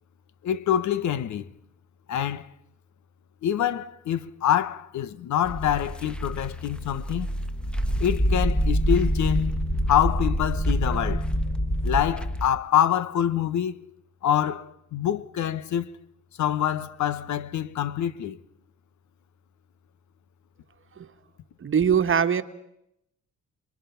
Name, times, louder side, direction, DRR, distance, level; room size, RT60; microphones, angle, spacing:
voice 1, 0.4-1.4 2.1-2.5 3.4-7.3 8.0-11.3 11.8-13.8 14.2-15.9 16.4-18.4, left 10 dB, 70° left, 1.1 m, -26 dB
sound 1, 5.4-12.5, equal, 5° left, 1.2 m, -26 dB
voice 2, 21.6-22.4, right 7 dB, 45° right, 1.4 m, -22 dB
29.0 x 22.5 x 5.8 m
cardioid pair, 90°, 30 cm